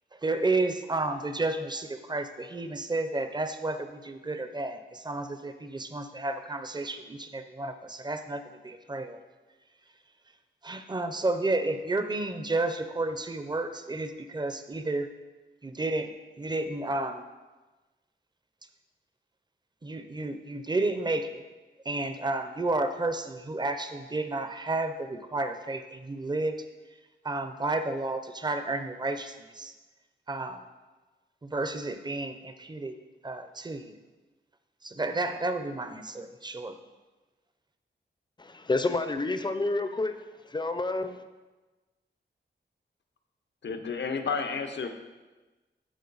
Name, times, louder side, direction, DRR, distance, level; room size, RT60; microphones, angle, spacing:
voice 1, 0.1-9.2 10.6-15.1 15.6-16.1 16.4-17.2 19.8-21.4 21.8-26.6 27.2-29.7 30.3-30.6 31.4-33.0 33.2-33.9 34.8-36.7, right 2 dB, 25° right, 8 dB, 0.6 m, -31 dB
voice 2, 38.4-40.1 40.5-41.2, left 2 dB, 25° left, 9 dB, 0.5 m, -29 dB
voice 3, 43.6-44.9, left 5 dB, 70° left, 6 dB, 0.8 m, -31 dB
12.5 x 4.5 x 4.0 m, 1.2 s
wide cardioid pair, 100°, 19 cm